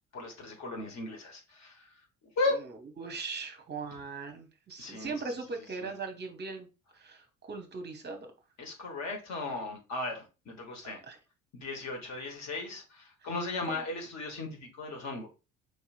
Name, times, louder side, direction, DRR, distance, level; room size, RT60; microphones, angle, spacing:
voice 1, 0.1-1.9 2.4-2.6 3.9-4.0 4.8-5.4 5.8-5.9 8.6-11.0 11.5-15.3, left 3 dB, 40° left, 1.3 m, -36 dB
voice 2, 3.0-6.7 7.0-8.3 11.0-11.2 13.7-13.8, right 4 dB, 25° right, 0.9 m, -39 dB
4.8 x 2.9 x 2.4 m
figure-of-eight pair, 55°, 42 cm